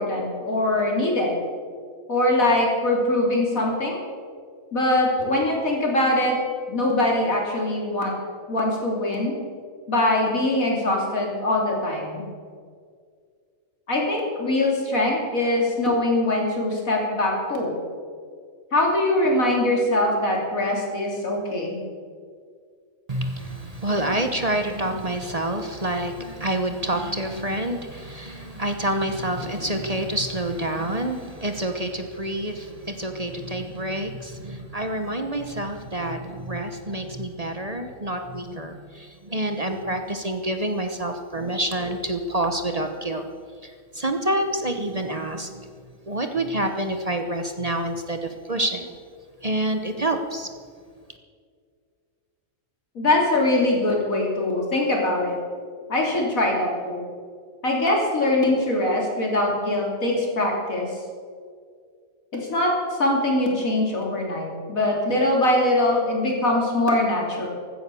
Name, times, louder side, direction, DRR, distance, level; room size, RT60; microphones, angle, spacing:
voice 1, 0.0-1.4 2.1-4.0 4.7-6.4 6.7-8.1 8.5-9.3 9.9-12.2 13.9-17.7 18.7-21.8 53.0-55.4 55.9-57.0 57.6-60.9 62.3-62.7 63.0-67.5, left 1 dB, 85° left, -1 dB, 3.8 m, -22 dB
voice 2, 23.1-43.2 43.6-45.7 46.1-49.0 49.4-50.5, right 1 dB, 30° right, 6 dB, 1.1 m, -27 dB
15.0 x 13.5 x 7.0 m, 2.1 s
omnidirectional pair, 1.4 m